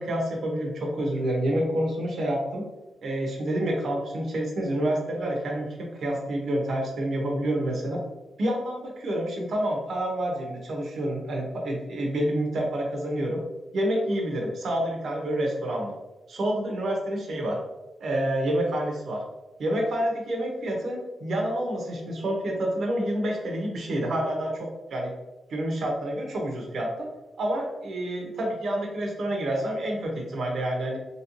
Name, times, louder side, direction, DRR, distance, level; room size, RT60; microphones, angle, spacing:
voice 1, 0.0-2.6 3.0-5.7 6.0-8.0 8.4-13.4 13.7-15.9 16.3-17.6 18.0-19.2 19.6-25.1 25.5-27.1 27.4-31.0, right 1 dB, 70° right, 0 dB, 0.9 m, -28 dB
3.0 x 3.0 x 2.7 m, 1.1 s
cardioid pair, 95°, 0 cm